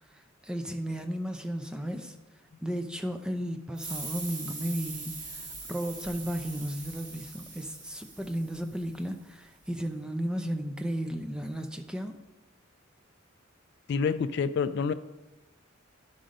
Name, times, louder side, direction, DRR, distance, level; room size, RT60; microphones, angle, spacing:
voice 1, 0.1-2.2 2.6-12.2, equal, 5° right, 5 dB, 0.5 m, -34 dB
sound 1, 3.7-9.1, right 3 dB, 40° right, 2.1 m, -42 dB
voice 2, 13.9-14.9, left 5 dB, 55° left, 13 dB, 0.3 m, -27 dB
10.5 x 3.8 x 5.2 m, 1.1 s
head